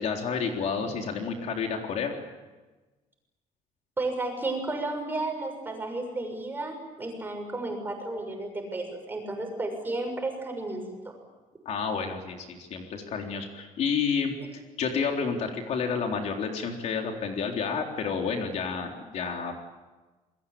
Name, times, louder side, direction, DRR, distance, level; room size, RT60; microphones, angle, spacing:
voice 1, 0.0-2.1 11.7-14.3 14.8-19.5, left 5 dB, 55° left, 2 dB, 3.8 m, -30 dB
voice 2, 4.0-11.1, right 2 dB, 15° right, 3 dB, 6.8 m, -33 dB
28.0 x 22.0 x 8.7 m, 1.2 s
cardioid pair, 150°, 14 cm